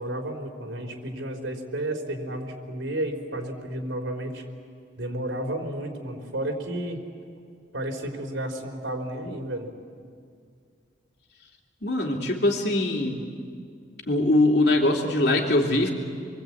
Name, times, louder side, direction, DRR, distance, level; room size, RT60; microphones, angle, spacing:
voice 1, 0.0-4.4 5.0-7.0 7.7-9.7, right 1 dB, 85° right, 2 dB, 3.6 m, -32 dB
voice 2, 11.8-13.2 14.1-15.9, left 1 dB, 55° left, 1 dB, 2.9 m, -22 dB
29.0 x 23.0 x 8.5 m, 2.2 s
head